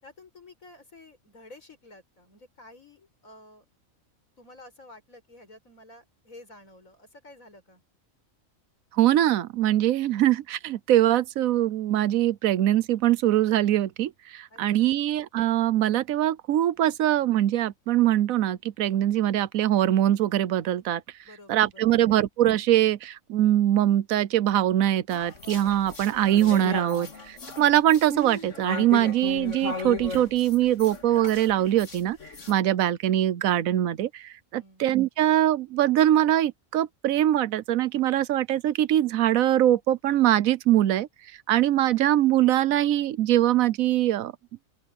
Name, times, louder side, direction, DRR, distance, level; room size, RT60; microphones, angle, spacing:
voice 1, 0.0-3.6 4.4-7.8 14.5-15.0 21.2-22.0 34.5-34.9, left 2 dB, 80° left, 6.4 m, -51 dB
voice 2, 8.9-21.0 21.5-32.2 32.5-41.1 41.5-44.3, right 12 dB, 90° right, 1.1 m, -22 dB
sound 1, 25.1-32.5, left 4 dB, 65° left, 2.3 m, -36 dB
open air
omnidirectional pair, 1.4 m